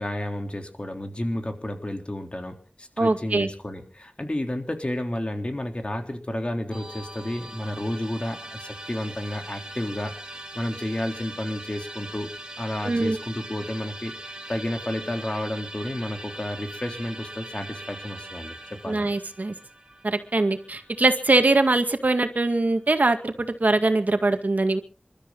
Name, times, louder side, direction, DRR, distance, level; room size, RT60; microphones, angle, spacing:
voice 1, 0.0-19.1, left 1 dB, 40° left, 4 dB, 3.7 m, -31 dB
voice 2, 3.0-3.5 12.8-13.2 18.9-19.5 20.0-24.8, right 2 dB, 70° right, 6 dB, 2.0 m, -22 dB
Musical instrument, 6.7-21.9, right 1 dB, 25° right, 5.4 m, -41 dB
28.0 x 13.0 x 4.0 m, 0.38 s
wide cardioid pair, 45°, 3 cm